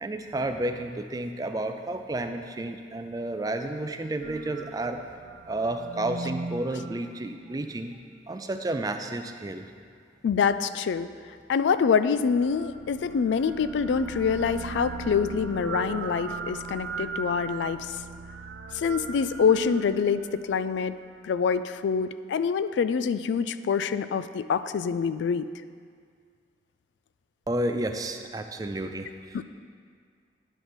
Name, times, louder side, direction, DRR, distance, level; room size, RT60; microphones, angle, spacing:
voice 1, 0.0-5.0 5.4-8.0 8.3-9.7 27.5-29.4, right 1 dB, 20° right, 6 dB, 0.4 m, -31 dB
sound 1, 4.2-7.8 12.1-21.3, right 4 dB, 90° right, 0.5 m, -38 dB
voice 2, 10.2-11.1 11.5-18.0 18.7-21.0 21.2-25.5 29.3-29.4, left 6 dB, 80° left, 13 dB, 0.3 m, -25 dB
10.0 x 4.0 x 6.1 m, 2.1 s
head